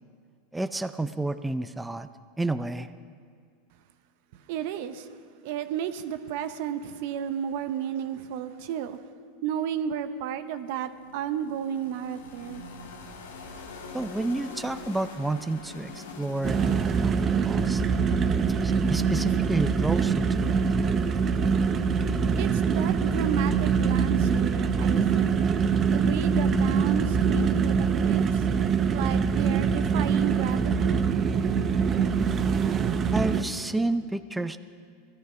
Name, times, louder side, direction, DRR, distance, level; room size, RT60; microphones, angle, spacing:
voice 1, 0.5-2.1 2.4-2.9 13.9-17.1 17.4-17.8 18.6-20.8 33.1-34.6, right 2 dB, 5° right, 0.5 m, -30 dB
voice 2, 4.3-5.1 5.4-9.0 9.4-12.6 22.4-25.5 25.8-28.5 28.9-31.0, right 9 dB, 65° right, 0.9 m, -33 dB
sound 1, 10.8-18.8, left 3 dB, 85° left, 1.8 m, -44 dB
sound 2, 16.4-33.4, right 6 dB, 30° right, 0.9 m, -24 dB
16.5 x 13.0 x 5.7 m
hypercardioid pair, 100°, 0 cm